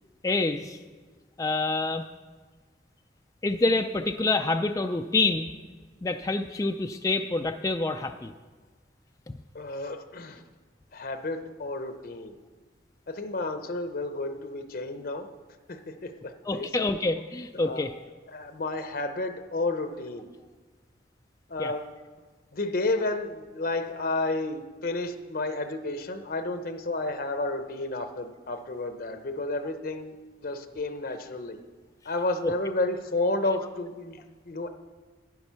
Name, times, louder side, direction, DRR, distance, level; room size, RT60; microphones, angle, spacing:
voice 1, 0.2-0.8 1.4-2.1 3.4-5.5 6.0-8.3 16.4-17.9 21.6-21.7 32.4-32.5, left 3 dB, 20° left, 6 dB, 0.3 m, -27 dB
voice 2, 9.5-10.4 10.9-12.3 13.1-15.3 15.7-16.9 17.5-17.8 18.3-20.3 21.5-21.8 22.5-30.1 30.4-31.6 32.1-34.7, left 2 dB, 55° left, 8 dB, 0.7 m, -31 dB
10.5 x 9.6 x 5.7 m, 1.4 s
head